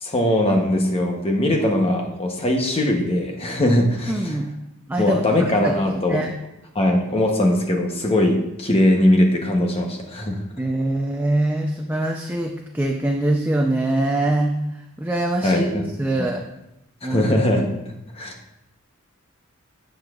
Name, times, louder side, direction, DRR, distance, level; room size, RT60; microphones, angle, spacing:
voice 1, 0.0-4.4 5.0-6.2 6.7-10.4 15.4-15.9 16.2-16.3 17.0-17.7 18.1-18.3, left 1 dB, 30° left, 2 dB, 0.9 m, -20 dB
voice 2, 4.1-4.5 4.9-5.7 6.1-6.3 10.6-14.5 15.0-15.6 16.0-16.4 17.0-17.2, right 1 dB, 10° right, 1 dB, 0.5 m, -23 dB
11.5 x 7.9 x 2.4 m, 0.88 s
head